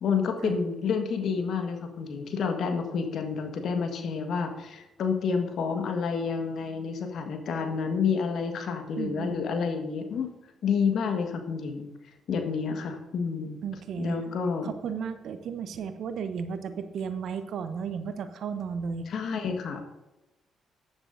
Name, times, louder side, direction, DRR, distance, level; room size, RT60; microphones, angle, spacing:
voice 1, 0.0-10.3 10.6-11.9 12.3-13.6 14.0-14.7 19.1-19.8, left 5 dB, 60° left, 5 dB, 1.5 m, -29 dB
voice 2, 9.0-9.4 13.6-14.3 14.6-19.1, right 6 dB, 65° right, 10 dB, 0.9 m, -34 dB
15.0 x 10.5 x 2.6 m, 1.0 s
hypercardioid pair, 45°, 0 cm